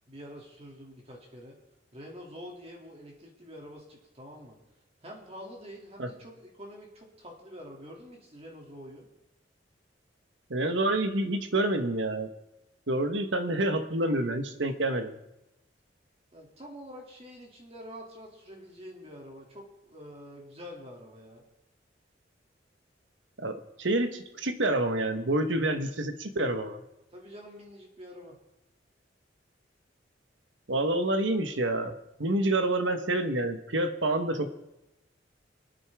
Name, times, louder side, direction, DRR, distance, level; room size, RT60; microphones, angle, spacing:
voice 1, 0.1-1.6 1.9-4.6 5.0-9.1 16.3-21.4 27.1-28.4, equal, 35° right, -1 dB, 2.7 m, -46 dB
voice 2, 10.5-12.3 12.9-15.1 23.4-26.8 30.7-31.9 32.2-34.5, right 1 dB, 80° right, 8 dB, 1.3 m, -28 dB
26.0 x 9.2 x 3.6 m, 0.91 s
head